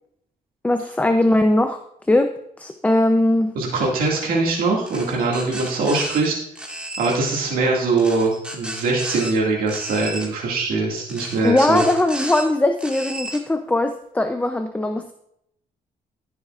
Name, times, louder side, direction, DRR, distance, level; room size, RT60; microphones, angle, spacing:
voice 1, 0.6-1.8 2.1-3.5 4.0-4.1 11.4-15.1, left 1 dB, 10° left, 7 dB, 0.5 m, -20 dB
voice 2, 3.6-6.4 7.0-11.8, right 3 dB, 90° right, -2 dB, 2.1 m, -22 dB
sound 1, 4.9-6.2 6.6-7.2 8.0-9.3 9.7-10.3 11.1-12.4 12.8-13.4, right 1 dB, 5° right, 1.8 m, -33 dB
14.5 x 7.3 x 2.4 m, 0.74 s
cardioid pair, 110°, 15 cm